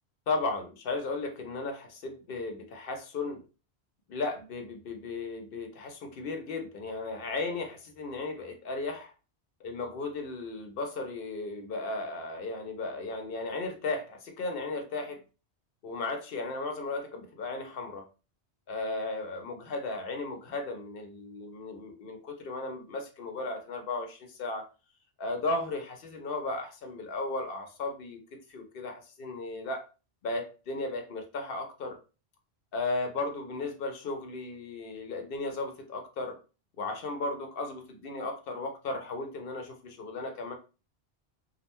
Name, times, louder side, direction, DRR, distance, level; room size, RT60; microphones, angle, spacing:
voice 1, 0.3-3.4 4.1-9.1 9.6-15.2 15.8-18.1 18.7-24.7 25.2-29.9 30.2-32.0 32.7-36.4 36.8-40.5, left 3 dB, 65° left, 4 dB, 0.8 m, -35 dB
2.5 x 2.1 x 3.0 m, 0.32 s
omnidirectional pair, 1.1 m